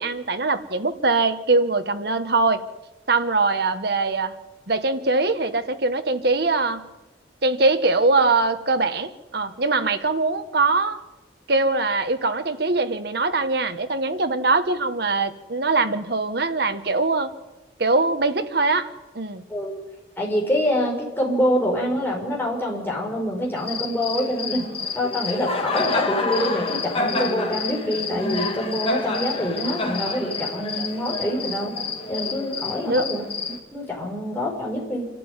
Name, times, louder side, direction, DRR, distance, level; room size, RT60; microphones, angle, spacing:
voice 1, 0.0-2.6 3.1-4.4 4.7-6.8 7.4-11.0 11.5-17.3 17.8-18.9 19.1-19.4 32.8-33.0, right 3 dB, 60° right, 9 dB, 1.4 m, -22 dB
voice 2, 19.5-19.8 20.2-24.6 24.9-31.7 32.1-35.1, equal, 10° left, -2 dB, 5.7 m, -26 dB
Cricket, 23.6-33.6, left 3 dB, 30° left, 2.2 m, -28 dB
27.0 x 12.5 x 9.7 m, 1.1 s
head